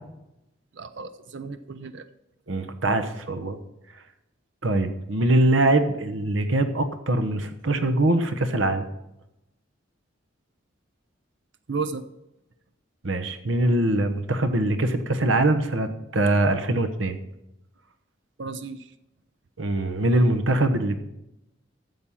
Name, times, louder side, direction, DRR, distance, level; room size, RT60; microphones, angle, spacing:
voice 1, 0.7-2.0 11.7-12.1 18.4-18.9, right 4 dB, 65° right, 11 dB, 0.6 m, -33 dB
voice 2, 2.5-3.6 4.6-8.9 13.0-17.2 19.6-21.0, right 1 dB, 85° right, 10 dB, 1.2 m, -23 dB
13.0 x 7.5 x 5.7 m, 0.88 s
head